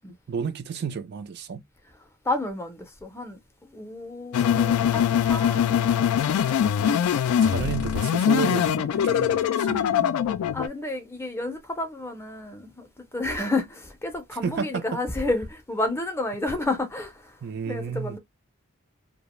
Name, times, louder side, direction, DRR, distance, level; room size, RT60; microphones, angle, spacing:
voice 1, 0.3-1.6 6.8-7.0 7.4-10.1 14.4-15.0 17.4-18.2, right 6 dB, 50° right, 0.3 m, -32 dB
voice 2, 2.2-5.8 10.5-17.4 17.7-18.2, left 2 dB, 10° left, 0.5 m, -31 dB
sound 1, 4.3-10.7, left 9 dB, 90° left, 0.3 m, -22 dB
2.4 x 2.1 x 3.0 m
head